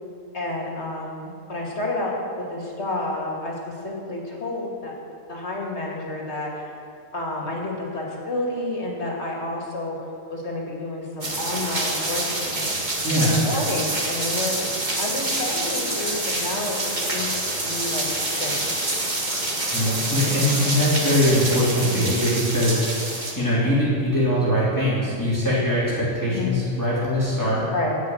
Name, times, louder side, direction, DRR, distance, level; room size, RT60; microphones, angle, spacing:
voice 1, 0.3-3.5 3.8-4.9 5.3-6.8 7.1-12.7 13.2-14.6 15.0-16.8 17.1-18.5 21.8-22.1 26.3-26.6 27.7-27.9, left 2 dB, 55° left, -2 dB, 2.6 m, -30 dB
sound 1, 11.2-23.3, right 2 dB, 35° right, 2.0 m, -26 dB
voice 2, 13.0-13.4 19.7-27.6, equal, 15° left, -8 dB, 3.3 m, -22 dB
17.0 x 5.8 x 9.3 m, 2.4 s
omnidirectional pair, 1.4 m